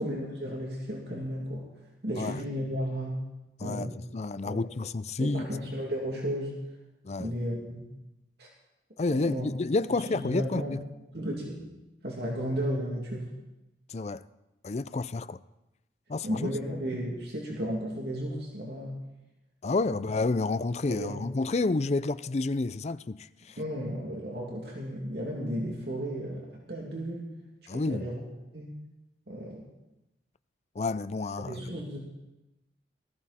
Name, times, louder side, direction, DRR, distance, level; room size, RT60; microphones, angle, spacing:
voice 1, 0.0-1.7 2.0-3.2 3.6-3.9 4.4-4.6 5.2-6.6 7.2-7.9 8.4-8.5 9.1-9.5 9.9-10.8 11.1-11.7 12.0-13.3 16.2-18.9 19.8-20.0 20.9-21.2 23.6-27.3 27.7-28.2 28.5-28.8 29.3-29.6 31.4-32.0, equal, 65° right, 2.6 m, -34 dB
voice 2, 3.6-5.5 7.0-7.3 9.0-10.8 13.9-14.2 14.6-15.4 16.1-16.5 19.6-23.6 27.7-28.1 30.8-31.6, left 3 dB, 40° left, 0.4 m, -30 dB
18.5 x 14.5 x 4.3 m
head